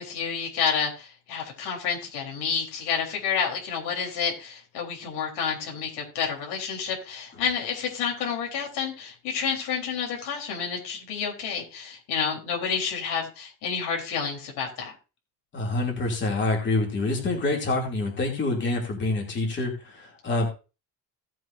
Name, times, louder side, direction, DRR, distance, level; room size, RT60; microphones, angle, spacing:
voice 1, 0.0-14.9, left 6 dB, 85° left, 0 dB, 3.9 m, -29 dB
voice 2, 15.5-20.5, left 2 dB, 30° left, 0 dB, 2.8 m, -26 dB
17.0 x 7.6 x 2.7 m, 0.31 s
cardioid pair, 175°, 38 cm